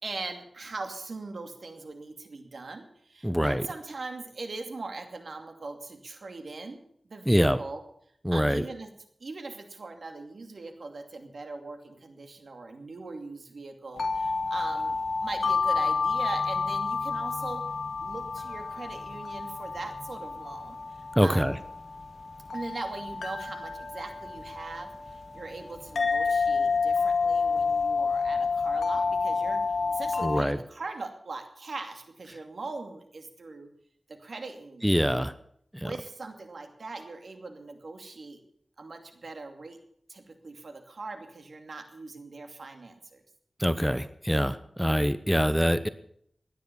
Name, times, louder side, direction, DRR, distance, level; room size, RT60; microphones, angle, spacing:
voice 1, 0.0-6.8 7.1-7.8 8.3-8.9 9.2-17.6 18.0-20.8 21.2-21.6 22.5-33.7 34.1-35.3 35.8-38.4 38.8-39.8 40.1-43.2, right 3 dB, 75° right, 5 dB, 2.6 m, -40 dB
voice 2, 3.2-3.6 7.3-7.6 8.2-8.6 21.2-21.6 30.2-30.6 34.8-35.3 35.7-35.9 43.6-45.9, equal, ahead, 12 dB, 0.9 m, -24 dB
sound 1, 13.9-30.4, left 4 dB, 85° left, 2.1 m, -29 dB
16.5 x 10.5 x 7.0 m, 0.67 s
wide cardioid pair, 70°, 0 cm